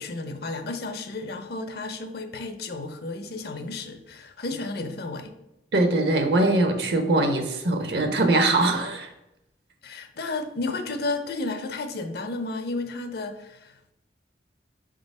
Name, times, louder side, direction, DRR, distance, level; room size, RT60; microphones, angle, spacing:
voice 1, 0.0-5.4 9.8-13.9, left 3 dB, 60° left, 8 dB, 0.7 m, -32 dB
voice 2, 5.7-9.1, right 2 dB, 65° right, 6 dB, 0.9 m, -22 dB
5.6 x 3.8 x 5.3 m, 0.88 s
head